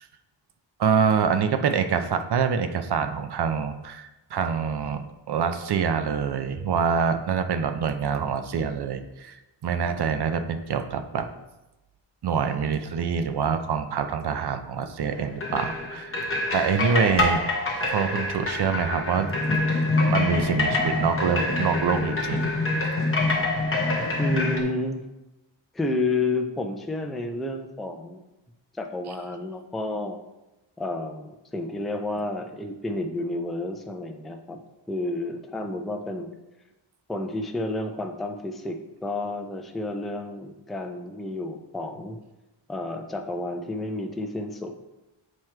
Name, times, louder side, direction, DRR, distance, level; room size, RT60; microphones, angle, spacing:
voice 1, 0.8-9.3 9.6-11.3 12.2-16.1 16.5-17.4 17.8-19.3 19.8-22.5 22.8-22.9, right 6 dB, 55° right, 8 dB, 0.6 m, -25 dB
sound 1, 15.1-24.6, left 2 dB, 25° left, 1.0 m, -26 dB
voice 2, 24.2-25.0 25.7-28.2 28.7-30.2 30.8-34.6 34.9-36.3 37.1-42.2 42.7-44.8, left 2 dB, ahead, 4 dB, 0.4 m, -30 dB
7.5 x 3.1 x 4.4 m, 1.0 s
wide cardioid pair, 135°, 46 cm